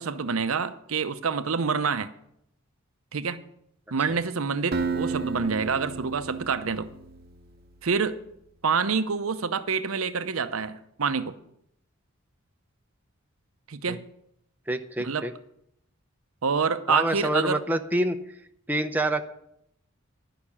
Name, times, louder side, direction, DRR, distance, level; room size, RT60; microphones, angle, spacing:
voice 1, 0.0-2.1 3.1-3.4 3.9-6.9 7.8-8.2 8.6-11.4 13.7-14.0 15.0-15.3 16.4-17.6, right 5 dB, 85° right, 11 dB, 0.7 m, -27 dB
Acoustic guitar, 4.7-7.7, right 4 dB, 50° right, 0.9 m, -33 dB
voice 2, 14.7-15.3 16.9-18.2 18.7-19.2, right 1 dB, 10° right, 5 dB, 0.6 m, -26 dB
11.5 x 5.8 x 8.6 m, 0.74 s
head